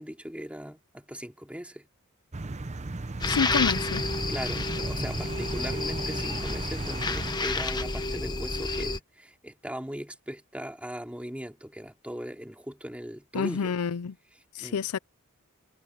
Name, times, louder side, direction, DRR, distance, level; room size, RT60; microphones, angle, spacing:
voice 1, 0.0-1.8 4.3-13.7 14.6-14.8, equal, 5° right, 3.0 m, -39 dB
sound 1, 2.3-7.3, right 2 dB, 30° right, 0.7 m, -35 dB
sound 2, 3.2-9.0, left 3 dB, 20° left, 1.2 m, -30 dB
voice 2, 3.3-4.0 13.3-14.1 14.5-15.0, left 6 dB, 85° left, 0.5 m, -28 dB
head